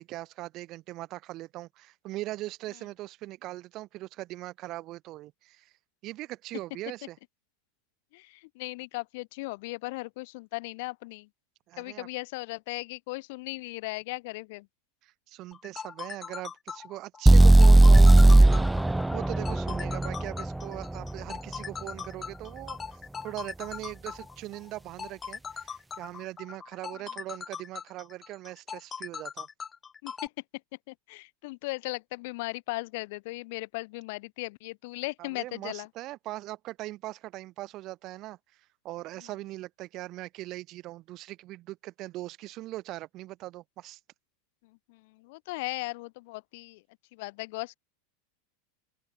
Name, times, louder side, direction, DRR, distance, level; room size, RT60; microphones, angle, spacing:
voice 1, 0.0-5.7 6.0-7.2 11.7-12.1 15.0-18.7 19.1-29.5 35.2-44.0, right 17 dB, 45° right, 6.3 m, -40 dB
voice 2, 8.1-11.3 11.8-14.7 30.0-30.3 30.9-35.9 44.9-46.8 47.1-47.8, left 24 dB, 65° left, 3.0 m, -37 dB
sound 1, 15.5-30.3, left 6 dB, 25° left, 3.9 m, -40 dB
sound 2, 17.3-21.2, right 2 dB, 5° right, 0.8 m, -17 dB
open air
hypercardioid pair, 110°, 0 cm